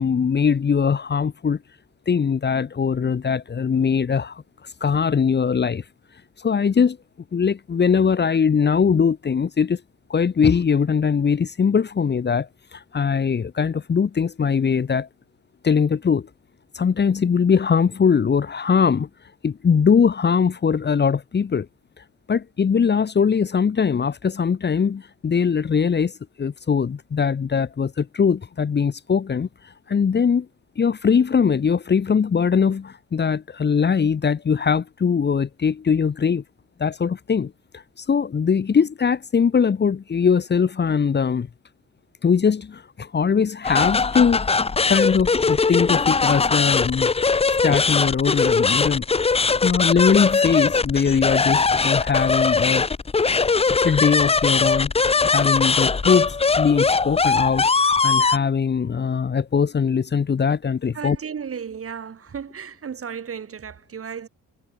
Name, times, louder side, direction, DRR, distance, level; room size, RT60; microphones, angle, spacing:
voice 1, 0.0-1.6 2.1-4.4 4.8-5.8 6.4-7.0 7.3-9.8 10.1-15.1 15.6-16.3 16.7-19.1 19.4-21.7 22.3-30.5 30.8-36.4 36.8-41.5 42.2-44.4 44.9-47.1 47.6-49.0 49.6-52.9 53.8-54.9 55.2-61.2, left 6 dB, 35° left, 1.3 m, -21 dB
sound 1, 43.6-58.4, left 4 dB, 20° left, 0.8 m, -20 dB
voice 2, 60.9-64.3, right 7 dB, 50° right, 7.6 m, -34 dB
cardioid pair, 90°, 30 cm